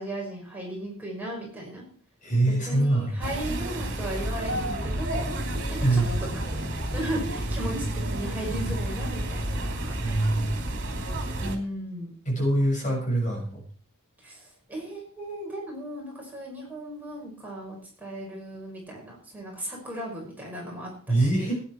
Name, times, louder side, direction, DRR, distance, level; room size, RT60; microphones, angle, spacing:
voice 1, 0.0-1.8 2.5-5.3 5.9-10.3 11.4-12.1 12.8-13.0 14.2-21.5, right 1 dB, 10° right, -3 dB, 5.8 m, -36 dB
voice 2, 2.2-3.1 5.8-6.1 9.8-10.5 12.2-13.6 21.1-21.5, right 1 dB, 35° left, -1 dB, 6.5 m, -24 dB
sound 1, 3.2-11.6, right 1 dB, 55° right, 3.0 m, -30 dB
18.0 x 10.5 x 4.6 m, 0.42 s
head